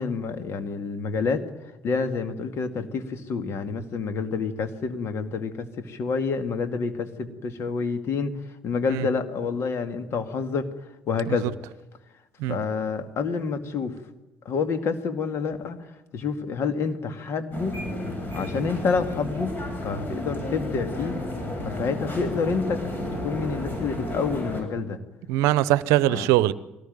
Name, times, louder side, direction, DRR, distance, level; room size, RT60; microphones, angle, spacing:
voice 1, 0.0-1.4 1.8-10.7 11.1-11.5 12.5-14.0 14.4-17.8 18.3-21.2 21.6-22.9 23.2-25.0 26.1-26.3, left 5 dB, 55° left, 2.3 m, -28 dB
sound 1, 17.5-24.6, left 1 dB, 35° left, 7.7 m, -32 dB
voice 2, 25.3-26.5, right 15 dB, 70° right, 0.8 m, -21 dB
23.0 x 18.5 x 9.3 m
hypercardioid pair, 55°, 5 cm